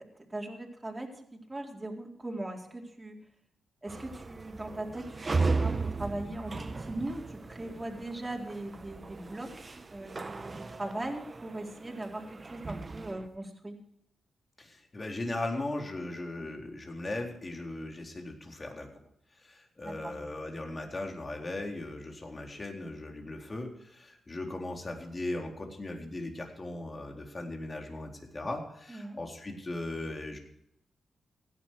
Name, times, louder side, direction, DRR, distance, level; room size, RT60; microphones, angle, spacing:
voice 1, 0.0-3.2 3.8-13.8 19.8-20.1 28.9-29.2, right 1 dB, 25° right, 0 dB, 4.1 m, -39 dB
sound 1, 3.9-13.3, right 3 dB, 40° right, 1.2 m, -36 dB
voice 2, 14.6-18.9 19.3-30.4, left 2 dB, 40° left, 2 dB, 3.9 m, -38 dB
16.0 x 11.0 x 4.7 m, 0.76 s
supercardioid pair, 45°, 0 cm